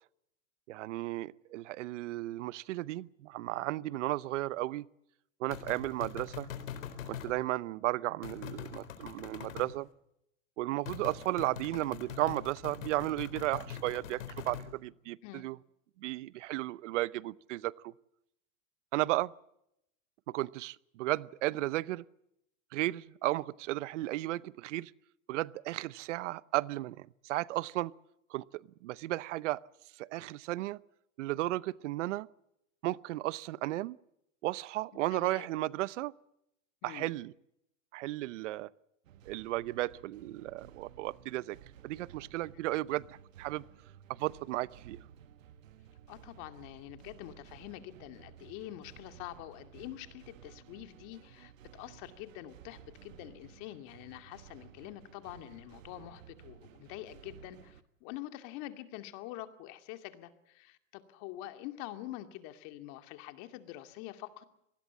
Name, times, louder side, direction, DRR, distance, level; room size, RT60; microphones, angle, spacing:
voice 1, 0.7-4.9 5.4-6.5 7.0-9.9 10.6-15.6 16.0-17.9 18.9-19.3 20.3-22.0 22.7-24.9 25.3-27.9 28.3-29.6 30.0-30.8 31.2-32.3 32.8-34.0 34.4-36.1 36.8-37.3 37.9-38.7 39.3-41.6 41.8-43.6 44.1-45.0, right 17 dB, 70° right, 20 dB, 0.8 m, -34 dB
sound 1, 5.5-7.3 8.2-9.7 10.9-14.7, left 8 dB, 85° left, 4.1 m, -43 dB
voice 2, 35.1-35.5 36.8-37.1 46.1-64.4, left 14 dB, 50° left, 8 dB, 2.4 m, -46 dB
sound 2, 39.0-57.8, right 9 dB, 85° right, 1.6 m, -55 dB
25.0 x 19.5 x 7.3 m, 0.80 s
supercardioid pair, 130°, 38 cm